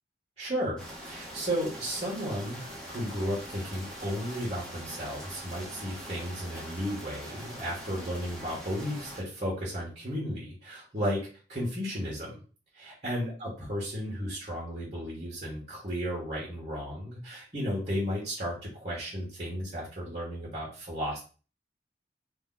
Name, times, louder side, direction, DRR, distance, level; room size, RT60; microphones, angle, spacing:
voice 1, 0.4-11.2 11.5-12.4 12.7-21.2, equal, 35° right, -7 dB, 1.3 m, -34 dB
sound 1, 0.8-9.2, equal, 5° left, 0.8 m, -43 dB
3.0 x 2.3 x 3.8 m, 0.36 s
head